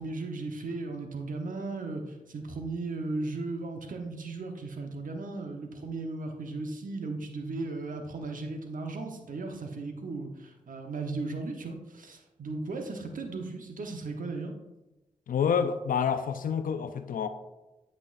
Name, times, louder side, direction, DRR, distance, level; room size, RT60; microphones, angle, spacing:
voice 1, 0.0-14.5, right 3 dB, 70° right, 1.0 m, -36 dB
voice 2, 15.3-17.3, left 7 dB, 75° left, 0.5 m, -28 dB
8.3 x 6.1 x 2.6 m
cardioid pair, 40°, 14 cm